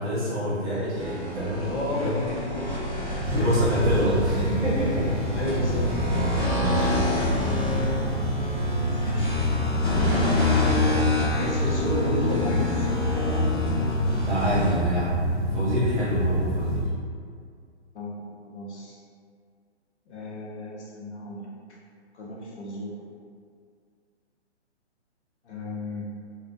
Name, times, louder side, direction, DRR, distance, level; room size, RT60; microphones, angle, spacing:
voice 1, 0.0-2.1 3.3-5.1 6.6-7.2 14.2-15.1 15.4-16.9, equal, 55° right, -9 dB, 0.8 m, -27 dB
sound 1, 0.9-14.8, left 2 dB, 5° left, 0.4 m, -28 dB
voice 2, 1.6-2.7 3.0-3.5 5.3-5.9 9.0-9.4 10.4-13.6 17.9-19.0 20.1-21.5 22.1-22.9 25.4-26.0, left 1 dB, 70° left, -4 dB, 0.7 m, -33 dB
sound 2, 3.2-16.9, equal, 35° left, 0.8 m, -27 dB
2.4 x 2.0 x 2.5 m, 2.1 s
hypercardioid pair, 140°, 35 cm